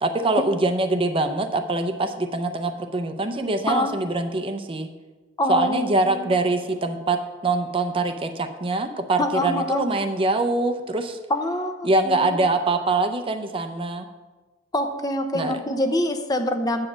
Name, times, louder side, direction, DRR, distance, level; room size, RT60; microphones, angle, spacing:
voice 1, 0.0-4.9 5.5-7.2 7.4-11.2 11.8-14.1 15.3-15.6, right 2 dB, 30° right, 7 dB, 0.6 m, -24 dB
voice 2, 5.4-6.4 9.2-9.9 11.3-12.4 14.7-16.9, left 1 dB, 20° left, 6 dB, 0.6 m, -25 dB
8.4 x 5.1 x 7.3 m, 1.2 s
head